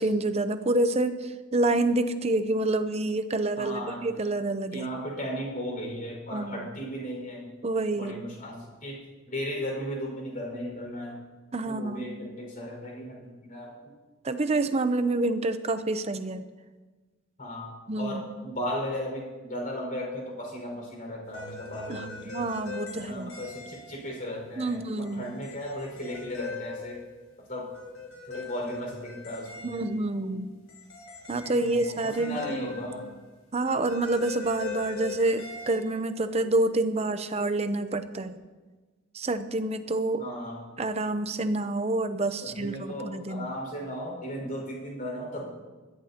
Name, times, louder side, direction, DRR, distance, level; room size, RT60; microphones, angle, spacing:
voice 1, 0.0-4.9 6.3-6.6 7.6-8.2 11.5-12.1 14.2-16.4 17.9-18.2 21.9-23.3 24.6-25.3 29.6-30.5 31.3-32.5 33.5-38.4 39.1-40.2 40.8-43.5, right 2 dB, 30° right, 10 dB, 0.7 m, -28 dB
voice 2, 3.6-4.1 4.7-7.5 8.0-9.0 9.3-11.2 11.6-13.9 17.4-22.4 23.0-27.0 27.5-27.7 28.3-29.9 31.5-31.8 32.0-33.1 40.2-40.6 42.4-45.5, equal, 40° left, -1 dB, 5.3 m, -36 dB
sound 1, 21.2-24.1 24.6-27.4 27.7-30.2 30.7-33.4 33.7-36.3, left 4 dB, 90° left, 4.9 m, -41 dB
20.5 x 14.0 x 2.9 m, 1.3 s
head